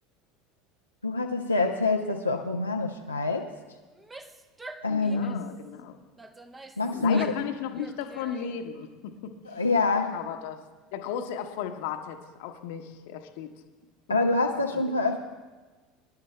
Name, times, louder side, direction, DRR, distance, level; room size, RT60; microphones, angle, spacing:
voice 1, 1.0-3.5 4.8-5.4 6.8-7.3 9.5-10.2 14.1-15.2, left 3 dB, 90° left, 1 dB, 0.5 m, -26 dB
Female speech woman speaking / Yell, 3.9-5.6 6.2-7.5 7.7-8.7, right 2 dB, 15° right, 0.8 m, -46 dB
voice 2, 4.9-6.0 6.9-9.6 10.1-10.6 10.9-13.5 14.1-14.2 14.7-14.9, left 8 dB, 60° left, 7 dB, 0.9 m, -35 dB
24.0 x 11.5 x 2.2 m, 1.3 s
figure-of-eight pair, 70°, 0 cm